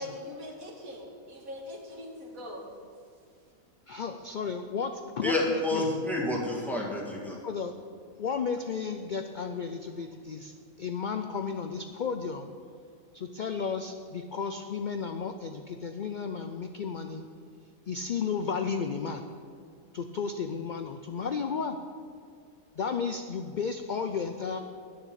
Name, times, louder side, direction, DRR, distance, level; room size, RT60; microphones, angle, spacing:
voice 1, 0.0-2.7, left 1 dB, 75° right, -1 dB, 2.3 m, -41 dB
voice 2, 3.9-5.8 7.2-7.7 8.2-12.5 13.1-17.3 17.9-19.2 19.9-21.8 22.8-24.6, left 5 dB, 65° left, 7 dB, 0.4 m, -33 dB
voice 3, 5.2-7.4, left 2 dB, ahead, -2 dB, 2.0 m, -29 dB
10.0 x 6.9 x 8.1 m, 2.2 s
omnidirectional pair, 1.4 m